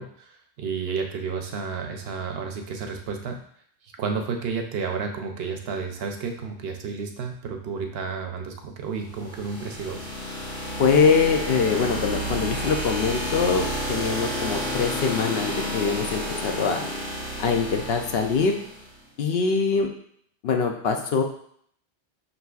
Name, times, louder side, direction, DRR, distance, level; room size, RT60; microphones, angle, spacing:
voice 1, 0.0-3.4 4.0-10.1, right 5 dB, 70° right, 4 dB, 0.8 m, -31 dB
sound 1, 9.1-18.9, equal, 90° left, 1.5 m, -31 dB
voice 2, 10.8-16.8 17.4-18.5 19.2-19.9 20.4-21.2, left 5 dB, 70° left, 4 dB, 0.8 m, -23 dB
6.0 x 2.7 x 2.3 m, 0.63 s
omnidirectional pair, 1.1 m